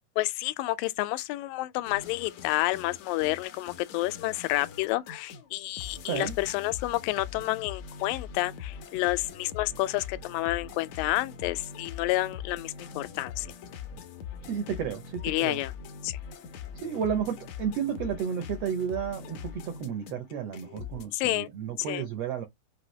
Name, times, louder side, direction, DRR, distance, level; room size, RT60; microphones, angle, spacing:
voice 1, 0.2-13.5 15.2-15.7 16.0-16.2 21.1-21.5 21.9-22.1, left 18 dB, 90° left, 2.3 m, -30 dB
sound 1, 1.9-21.1, left 7 dB, 70° left, 1.9 m, -42 dB
voice 2, 6.0-6.3 14.4-15.6 16.8-22.5, right 8 dB, 80° right, 1.4 m, -32 dB
6.0 x 2.7 x 3.2 m
omnidirectional pair, 3.9 m